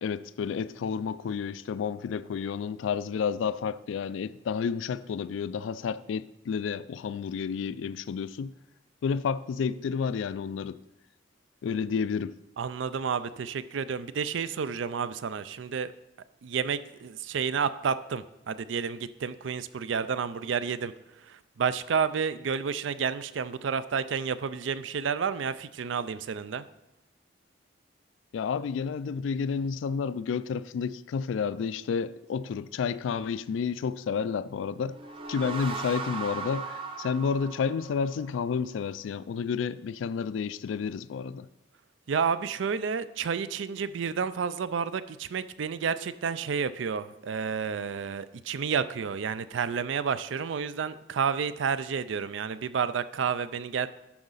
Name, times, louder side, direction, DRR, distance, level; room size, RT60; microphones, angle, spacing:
voice 1, 0.0-8.5 9.0-10.8 11.6-12.4 28.3-35.0 35.3-41.5, left 6 dB, 75° left, 0.3 m, -30 dB
voice 2, 12.6-15.9 16.4-20.9 21.2-26.6 42.1-53.9, right 6 dB, 70° right, 0.4 m, -30 dB
sound 1, 34.8-38.4, right 4 dB, 30° right, 0.8 m, -38 dB
11.5 x 4.9 x 4.0 m
head